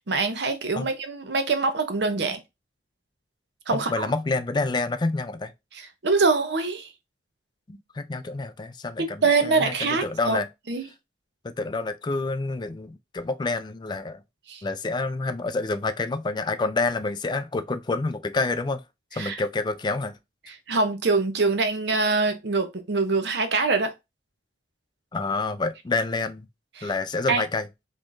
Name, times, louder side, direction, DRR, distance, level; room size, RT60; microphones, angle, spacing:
voice 1, 0.1-2.4 3.7-4.1 5.7-6.9 9.2-10.4 10.7-10.9 14.5-14.6 19.2-19.4 20.5-23.9 26.8-26.9 27.3-27.4, right 4 dB, 65° right, 0.7 m, -24 dB
voice 2, 3.7-5.5 7.7-10.5 11.4-14.2 14.6-18.8 19.1-20.2 25.1-26.5 26.8-27.7, left 3 dB, 25° left, 0.3 m, -28 dB
3.7 x 3.0 x 2.5 m
head